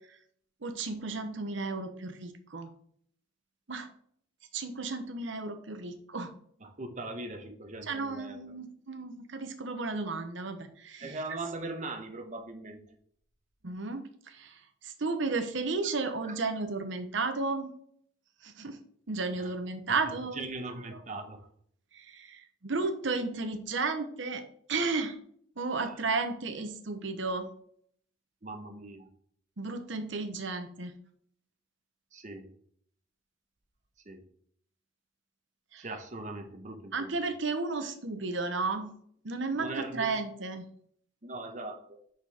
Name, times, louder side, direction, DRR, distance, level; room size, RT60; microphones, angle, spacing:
voice 1, 0.6-2.7 3.7-3.9 4.5-6.3 7.9-11.2 13.6-14.6 14.8-17.7 18.4-18.8 19.1-20.4 21.9-24.4 24.7-25.2 25.6-27.5 29.6-30.9 35.7-35.9 36.9-38.9 39.2-40.7, right 3 dB, 65° right, 7 dB, 0.9 m, -33 dB
voice 2, 6.6-8.5 11.0-12.8 16.2-16.4 19.4-19.5 20.3-21.4 25.7-26.0 28.4-29.1 32.1-32.5 34.1-34.2 35.8-37.1 39.5-40.1 41.2-41.8, right 2 dB, 35° right, 6 dB, 0.9 m, -40 dB
5.9 x 5.9 x 3.5 m, 0.63 s
head